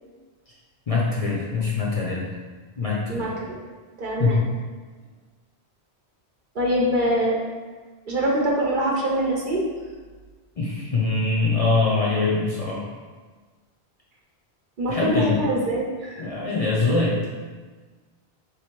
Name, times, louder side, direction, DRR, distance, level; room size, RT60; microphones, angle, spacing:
voice 1, 0.9-2.3 2.8-3.4 4.2-4.4 10.6-12.9 14.9-15.4 16.2-17.2, left 3 dB, 40° left, -5 dB, 0.6 m, -23 dB
voice 2, 3.1-3.6 4.0-4.4 6.5-7.4 8.1-9.7 14.8-16.3, right 1 dB, 55° right, -3 dB, 0.8 m, -24 dB
3.4 x 2.7 x 4.4 m, 1.4 s
omnidirectional pair, 1.1 m